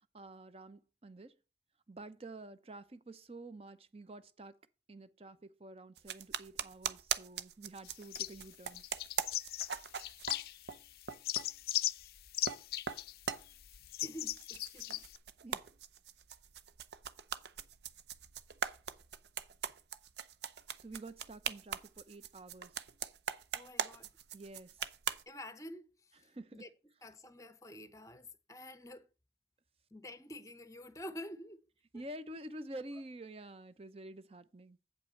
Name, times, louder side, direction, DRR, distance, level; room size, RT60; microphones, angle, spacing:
voice 1, 0.1-1.3 1.9-4.6 4.9-8.8 15.4-15.6 20.8-22.8 24.3-24.8 26.3-26.7 31.9-34.8, right 1 dB, 35° right, 0.6 m, -49 dB
sound 1, 6.0-10.8 11.1-11.5 12.1-12.6 12.9-14.1 14.4-25.2, right 7 dB, 75° right, 0.6 m, -41 dB
sound 2, 7.9-8.5 8.7-10.8 11.0-15.2, left 15 dB, 55° left, 0.4 m, -38 dB
voice 2, 14.0-15.0 23.5-24.1 25.3-26.7 27.0-29.1 29.9-31.6 31.9-32.0, left 1 dB, 20° left, 0.7 m, -49 dB
8.1 x 5.5 x 5.6 m
head